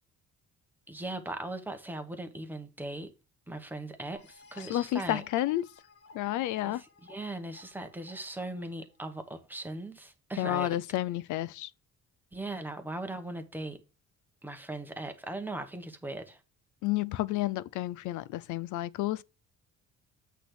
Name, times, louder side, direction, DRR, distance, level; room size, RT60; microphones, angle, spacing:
voice 1, 0.9-3.1 3.5-5.2 6.6-10.8 12.3-13.8 14.4-16.4, right 2 dB, 5° right, 1.0 m, -39 dB
sound 1, 4.1-9.6, left 5 dB, 50° left, 1.2 m, -54 dB
voice 2, 4.7-5.7 6.1-6.8 10.4-11.7 16.8-19.2, left 15 dB, 75° left, 0.5 m, -30 dB
8.3 x 3.4 x 5.9 m
cardioid pair, 140°, 30 cm